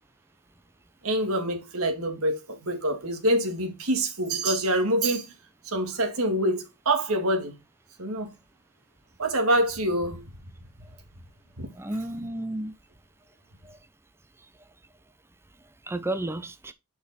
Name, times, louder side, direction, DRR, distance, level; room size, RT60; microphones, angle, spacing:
voice 1, 1.0-5.3 5.6-7.5 8.0-8.3 9.2-10.3 11.6-11.7, right 1 dB, 65° right, 2.1 m, -26 dB
voice 2, 11.7-12.7 13.6-13.8 15.8-16.7, right 1 dB, 10° right, 0.6 m, -32 dB
6.5 x 5.5 x 4.1 m
head